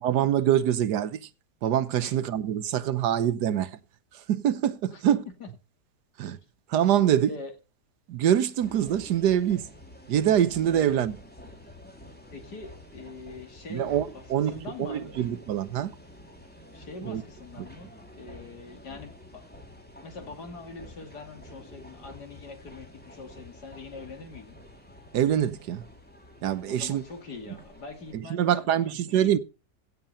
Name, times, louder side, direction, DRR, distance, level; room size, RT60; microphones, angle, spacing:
voice 1, 0.0-1.3 1.6-3.8 4.1-5.3 6.2-6.4 6.7-7.3 8.1-9.7 10.1-11.2 13.7-14.5 14.8-15.9 17.0-17.2 25.1-25.9 26.4-27.0 27.5-27.6 28.1-29.4, right 10 dB, 80° right, 1.4 m, -25 dB
sound 1, 8.6-28.2, left 1 dB, 5° left, 2.7 m, -49 dB
voice 2, 12.3-14.2 14.5-15.2 16.7-19.4 20.0-24.6 26.6-29.4, left 4 dB, 75° left, 2.9 m, -43 dB
16.5 x 6.6 x 5.4 m
omnidirectional pair, 1.7 m